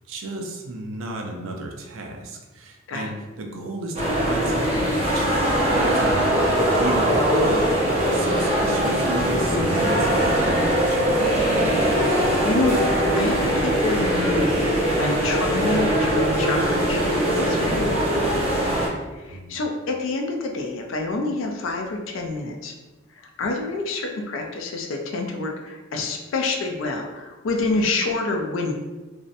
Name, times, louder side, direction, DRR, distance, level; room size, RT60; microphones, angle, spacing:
voice 1, 0.1-7.8 8.1-11.4 19.3-19.6, right 1 dB, 75° right, 1 dB, 0.4 m, -33 dB
sound 1, 3.9-18.9, equal, 30° right, 0.7 m, -21 dB
voice 2, 12.0-12.8 13.1-17.0 17.4-18.4 19.1-22.7 23.4-28.7, left 3 dB, 75° left, 2 dB, 0.4 m, -28 dB
2.6 x 2.0 x 2.5 m, 1.2 s
head